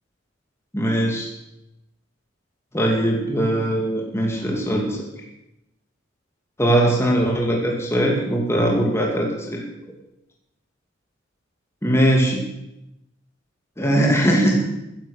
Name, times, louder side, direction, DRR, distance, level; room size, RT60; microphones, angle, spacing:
voice 1, 0.7-1.3 2.7-5.0 6.6-9.7 11.8-12.4 13.8-14.7, right 1 dB, 15° left, -1 dB, 2.5 m, -20 dB
15.0 x 10.5 x 6.6 m, 0.89 s
head